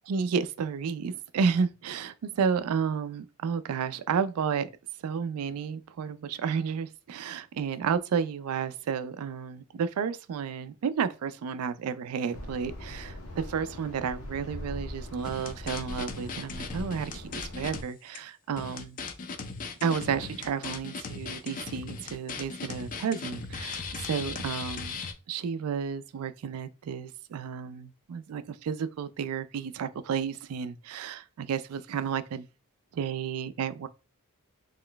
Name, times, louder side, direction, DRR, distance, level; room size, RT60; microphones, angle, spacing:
voice 1, 0.1-4.7 5.0-19.0 19.8-25.0 25.3-32.5 32.9-33.9, right 6 dB, 75° right, 0.3 m, -31 dB
sound 1, 12.3-17.8, left 1 dB, 75° left, 0.7 m, -41 dB
sound 2, 15.2-17.8 18.1-18.2 18.6-25.1, left 4 dB, 35° left, 0.4 m, -38 dB
3.0 x 2.2 x 3.8 m
head